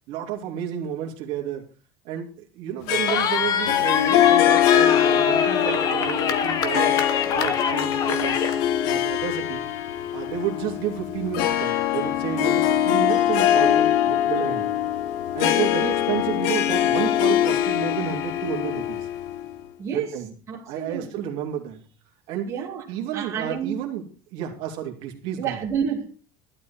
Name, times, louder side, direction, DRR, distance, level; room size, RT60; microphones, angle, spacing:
voice 1, 0.1-1.6 2.0-8.4 8.8-9.6 10.1-14.7 15.3-19.1 19.9-20.3 20.7-21.8 22.3-22.5 22.9-24.0 24.3-25.6, right 10 dB, 50° right, 2.9 m, -31 dB
Harp, 2.9-19.6, left 11 dB, 60° left, 1.2 m, -23 dB
Cheering, 3.1-8.6, left 7 dB, 30° left, 1.2 m, -25 dB
voice 2, 19.8-21.3 22.5-22.8 23.1-23.8 25.4-26.1, right 7 dB, 25° right, 2.6 m, -30 dB
12.0 x 12.0 x 4.4 m
cardioid pair, 175°, 12 cm